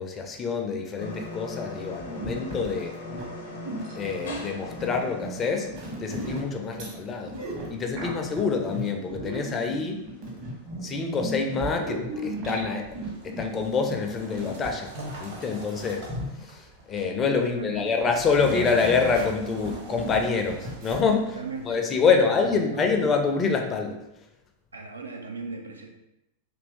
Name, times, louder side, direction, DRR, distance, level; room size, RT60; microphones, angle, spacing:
voice 1, 0.0-3.0 4.0-5.7 6.0-7.3 7.7-10.0 10.8-12.9 13.2-14.9 15.2-16.1 16.4-21.4 21.6-24.0, left 5 dB, 25° left, 3 dB, 0.4 m, -26 dB
sound 1, 1.0-12.3, left 2 dB, 65° left, 0.6 m, -43 dB
sound 2, 2.0-16.4 18.4-21.1, right 1 dB, 45° right, 1.0 m, -36 dB
sound 3, 12.8-21.7, right 2 dB, 60° right, 1.3 m, -44 dB
voice 2, 17.4-18.0 21.3-22.9 24.7-26.0, right 4 dB, 75° right, 3 dB, 0.4 m, -39 dB
2.8 x 2.5 x 3.3 m, 0.87 s
figure-of-eight pair, 90°, 0 cm